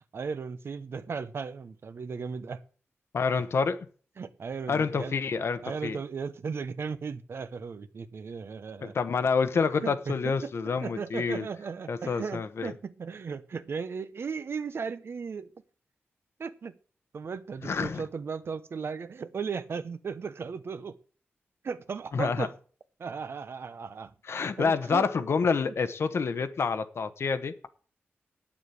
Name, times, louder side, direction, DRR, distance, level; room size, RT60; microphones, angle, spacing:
voice 1, 0.1-2.6 4.2-5.1 5.6-8.9 9.8-10.5 10.8-15.5 16.4-16.8 17.1-21.0 21.6-22.5 23.0-24.1 24.6-25.0 25.6-25.7, right 5 dB, 65° right, 0.9 m, -36 dB
voice 2, 3.1-3.8 4.7-6.0 8.8-11.5 11.9-12.7 17.6-18.0 22.1-22.5 24.3-27.7, left 5 dB, 70° left, 1.1 m, -28 dB
9.4 x 7.3 x 8.4 m
wide cardioid pair, 105°, 5 cm